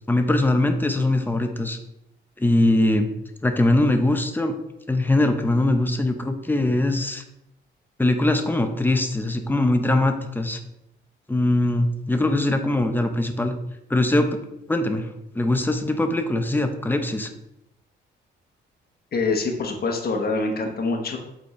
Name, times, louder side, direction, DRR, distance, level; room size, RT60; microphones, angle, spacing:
voice 1, 0.1-1.8 2.4-3.1 3.4-4.6 4.9-7.2 8.0-10.6 11.3-13.5 13.9-14.4 14.7-15.1 15.3-17.3, left 1 dB, 10° left, 6 dB, 0.8 m, -21 dB
voice 2, 19.1-21.2, left 3 dB, 50° left, 2 dB, 1.2 m, -25 dB
8.1 x 4.3 x 3.2 m, 0.85 s
cardioid pair, 90°, 20 cm